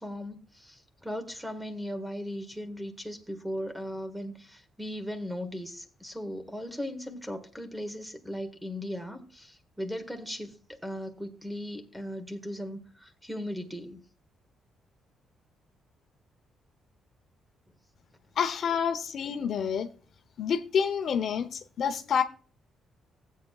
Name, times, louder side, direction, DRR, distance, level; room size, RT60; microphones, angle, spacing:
voice 1, 0.0-14.0, equal, ahead, 1.6 m, -38 dB
voice 2, 18.4-19.9 20.4-22.2, left 7 dB, 60° left, 0.8 m, -28 dB
16.0 x 8.3 x 2.4 m
cardioid pair, 90°, 0 cm